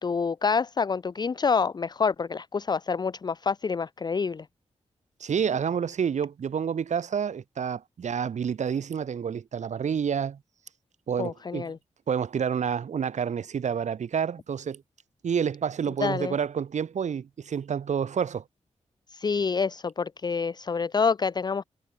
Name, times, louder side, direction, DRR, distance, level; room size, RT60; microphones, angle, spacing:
voice 1, 0.0-4.5 11.2-11.8 16.0-16.3 19.1-21.6, left 5 dB, 35° left, 0.7 m, -27 dB
voice 2, 5.2-10.4 11.1-11.7 12.1-14.8 15.2-18.4, right 7 dB, 75° right, 3.8 m, -29 dB
wide cardioid pair, 145°, 12 cm